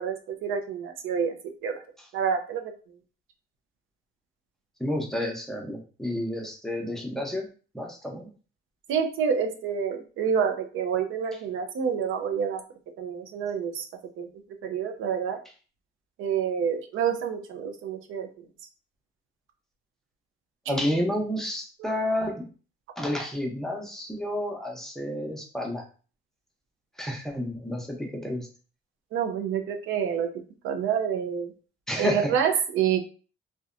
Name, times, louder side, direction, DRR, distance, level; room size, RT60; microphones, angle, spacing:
voice 1, 0.0-1.8 2.1-2.7 8.9-12.6 13.0-13.8 14.2-14.3 14.6-15.4 16.2-18.5 20.7-20.8 21.8-21.9 29.1-31.5 32.0-33.0, right 7 dB, 85° right, 6 dB, 0.5 m, -28 dB
voice 2, 4.8-7.4 7.7-8.3 20.7-22.4 23.0-25.8 27.0-28.5 31.9-32.3, left 1 dB, ahead, 0 dB, 0.6 m, -30 dB
2.7 x 2.1 x 2.4 m, 0.37 s
cardioid pair, 90°, 20 cm